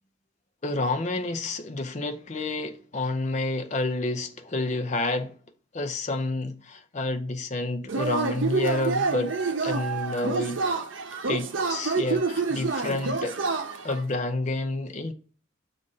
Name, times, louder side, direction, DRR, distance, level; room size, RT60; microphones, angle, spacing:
voice 1, 0.6-5.3 5.7-10.7 11.3-13.4 13.8-15.1, left 2 dB, 35° left, 0.6 m, -29 dB
Yell / Cheering, 7.9-14.0, right 4 dB, 80° right, 0.7 m, -28 dB
7.5 x 2.6 x 5.4 m
head